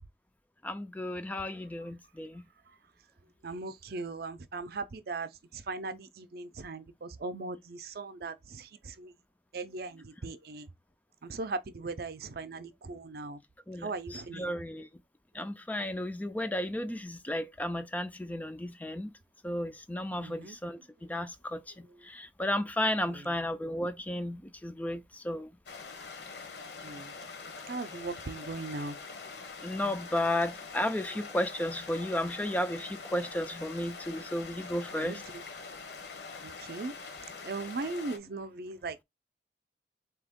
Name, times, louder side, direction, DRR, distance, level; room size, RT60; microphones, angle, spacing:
voice 1, 0.6-2.4 13.7-14.9 15.3-19.1 19.4-20.8 21.1-25.5 29.6-35.2, left 1 dB, 10° left, 0.3 m, -33 dB
voice 2, 3.4-9.1 9.5-10.7 11.2-13.4 13.8-14.5 20.1-20.6 23.1-23.3 26.8-27.1 27.7-29.0 34.9-35.2 36.4-37.2 37.4-39.0, right 3 dB, 55° right, 0.5 m, -39 dB
sound 1, 25.7-38.2, left 4 dB, 65° left, 0.9 m, -44 dB
4.2 x 2.9 x 3.6 m
head